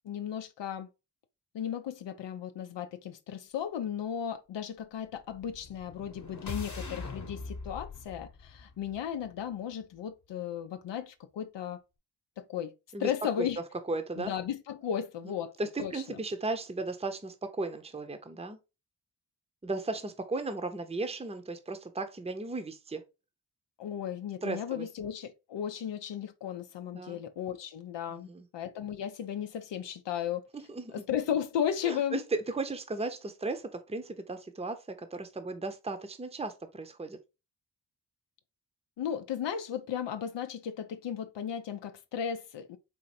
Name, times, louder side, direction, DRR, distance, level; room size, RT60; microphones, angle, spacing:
voice 1, 0.0-0.9 1.5-11.8 12.4-12.7 13.0-13.6 14.2-15.5 15.8-16.2 23.8-30.4 30.9-32.2 39.0-42.8, left 9 dB, 90° left, 0.5 m, -35 dB
sound 1, 5.3-9.5, left 3 dB, 45° left, 1.0 m, -42 dB
voice 2, 13.9-14.3 15.2-15.3 15.6-18.6 19.6-23.0 24.4-24.9 26.9-27.2 28.1-28.5 30.7-31.0 31.8-37.2, right 3 dB, 15° right, 0.6 m, -36 dB
4.3 x 2.6 x 4.1 m
wide cardioid pair, 65°, 42 cm